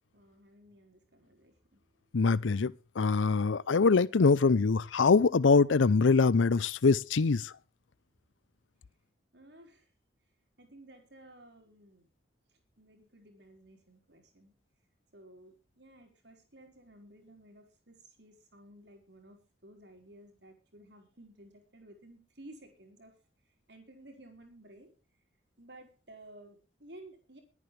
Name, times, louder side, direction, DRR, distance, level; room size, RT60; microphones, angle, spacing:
voice 1, 0.1-1.8 9.3-9.9 10.6-12.1 12.8-14.5 15.1-23.1 23.7-24.9 25.6-27.4, right 1 dB, 65° right, 4.7 m, -55 dB
voice 2, 2.1-7.5, left 4 dB, 85° left, 0.6 m, -24 dB
23.0 x 9.9 x 3.3 m
head